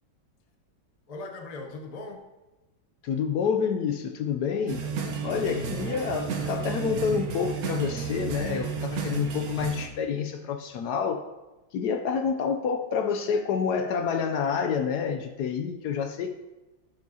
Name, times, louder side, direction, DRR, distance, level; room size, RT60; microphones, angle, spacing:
voice 1, 1.1-2.2 5.3-6.1 6.4-6.5, left 2 dB, 50° left, 3 dB, 0.4 m, -40 dB
voice 2, 3.0-4.8 5.2-11.2 11.7-16.3, left 6 dB, 75° left, 6 dB, 1.0 m, -28 dB
sound 1, 4.7-9.9, right 6 dB, 60° right, 1.1 m, -32 dB
12.5 x 7.2 x 2.8 m, 1.1 s
omnidirectional pair, 2.0 m